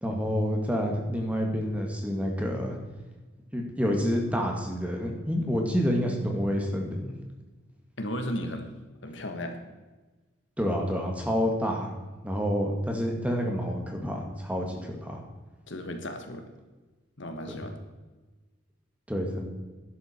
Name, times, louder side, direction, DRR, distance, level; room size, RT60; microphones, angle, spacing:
voice 1, 0.0-2.8 3.5-7.1 10.6-11.9 12.2-15.2 17.5-17.6 19.1-19.5, equal, 5° right, 1 dB, 1.8 m, -28 dB
voice 2, 8.0-8.7 9.0-9.6 15.7-16.4 17.2-17.8, equal, 60° left, 5 dB, 1.4 m, -35 dB
12.5 x 11.0 x 4.4 m, 1.2 s
head